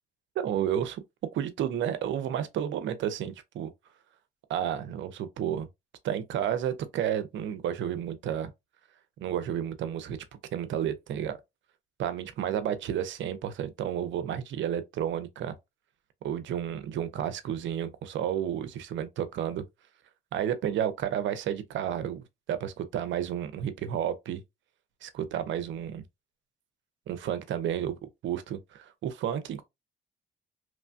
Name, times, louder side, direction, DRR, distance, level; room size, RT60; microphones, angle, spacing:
voice 1, 0.4-1.0 1.3-3.7 4.5-5.7 6.0-8.5 9.2-10.2 10.5-11.4 12.0-15.5 16.2-19.6 20.3-24.4 25.0-26.0 27.1-27.9 28.2-29.6, right 10 dB, 70° right, 0.6 m, -31 dB
3.0 x 2.2 x 2.5 m
cardioid pair, 90°, 20 cm